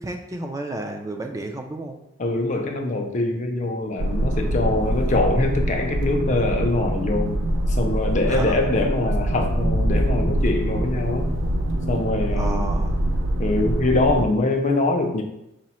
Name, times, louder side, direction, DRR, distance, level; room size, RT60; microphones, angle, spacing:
voice 1, 0.0-2.0 8.3-8.7 12.3-13.0, right 2 dB, 15° right, 4 dB, 0.4 m, -31 dB
voice 2, 2.2-7.4 7.7-11.3 11.9-12.6 13.4-15.2, left 2 dB, 40° left, 3 dB, 0.5 m, -23 dB
sound 1, 4.0-14.2, right 1 dB, 80° right, 0.4 m, -24 dB
4.9 x 2.1 x 4.2 m, 0.86 s
head